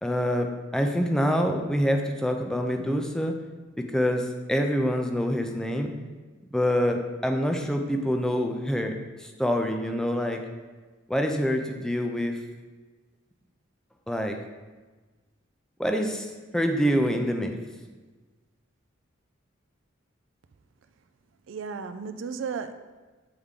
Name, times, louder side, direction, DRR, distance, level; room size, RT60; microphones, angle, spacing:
voice 1, 0.0-3.3 3.8-5.9 6.5-10.4 11.1-12.4 14.1-14.4 15.8-17.6, equal, 5° left, 4 dB, 0.4 m, -26 dB
voice 2, 21.5-22.7, right 5 dB, 70° right, 10 dB, 0.3 m, -34 dB
8.0 x 3.5 x 3.6 m, 1.3 s
head